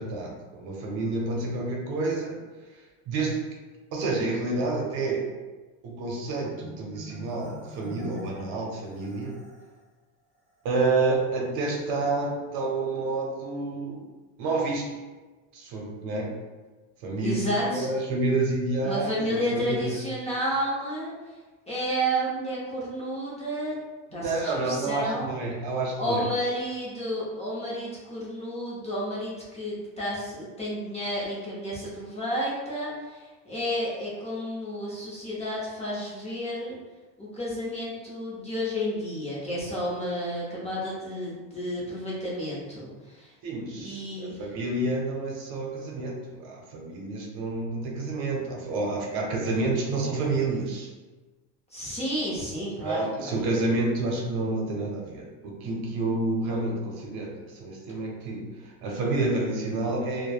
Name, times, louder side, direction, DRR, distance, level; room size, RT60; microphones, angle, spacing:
voice 1, 0.0-2.4 2.7-3.5 3.9-5.3 5.8-9.3 10.6-14.0 14.4-15.0 15.5-16.3 17.0-20.0 24.1-26.2 43.4-50.9 52.8-60.3, right 2 dB, 65° right, -1 dB, 0.8 m, -29 dB
Marimba xylophone, 6.4-9.8, equal, 20° right, 1.2 m, -44 dB
voice 2, 17.2-17.9 18.8-21.1 21.7-23.8 24.1-25.3 26.0-36.7 37.2-43.3 43.8-44.4 51.7-53.4, equal, 15° left, -7 dB, 0.6 m, -31 dB
3.0 x 2.2 x 2.3 m, 1.3 s
supercardioid pair, 120°, 42 cm